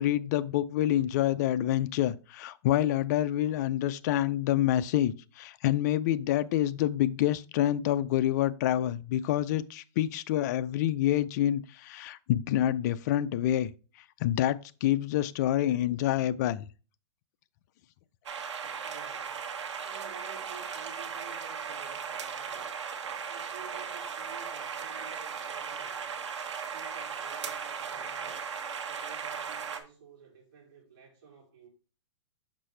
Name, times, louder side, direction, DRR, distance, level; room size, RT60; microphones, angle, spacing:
voice 1, 0.0-13.7 14.2-16.7, left 12 dB, 40° left, 0.4 m, -27 dB
sound 1, 18.3-29.8, right 6 dB, 85° right, 1.2 m, -37 dB
voice 2, 18.8-22.8 23.3-26.3 26.7-28.5 28.9-31.7, right 5 dB, 45° right, 3.2 m, -52 dB
6.0 x 5.4 x 3.2 m
hypercardioid pair, 150°, 15 cm